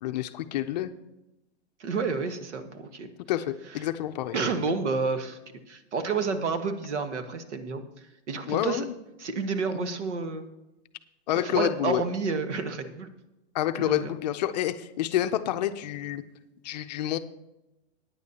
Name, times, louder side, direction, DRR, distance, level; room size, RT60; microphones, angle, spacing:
voice 1, 0.0-0.9 3.3-4.4 8.5-8.9 11.3-12.0 13.5-16.2 16.6-17.2, left 12 dB, 40° left, 9 dB, 0.5 m, -28 dB
voice 2, 1.8-3.1 4.3-5.4 5.7-7.8 8.3-8.8 9.2-10.4 11.4-13.1 13.8-14.1, right 4 dB, 85° right, 8 dB, 1.4 m, -30 dB
16.5 x 9.5 x 2.8 m, 0.96 s
hypercardioid pair, 150°, 34 cm